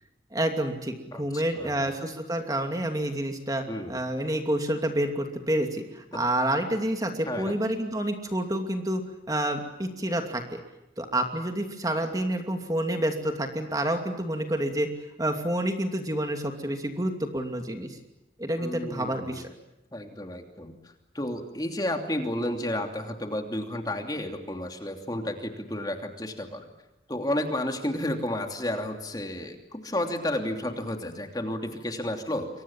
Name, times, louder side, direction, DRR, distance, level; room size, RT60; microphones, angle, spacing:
voice 1, 0.3-9.0 9.3-10.6 11.0-14.9 15.2-18.0 18.4-19.5, right 1 dB, 20° right, 5 dB, 2.7 m, -28 dB
voice 2, 1.1-1.9 3.7-4.0 7.3-7.6 18.6-19.5 19.9-26.7 27.1-32.5, left 1 dB, 20° left, 4 dB, 2.9 m, -32 dB
29.5 x 24.0 x 7.4 m, 0.93 s
head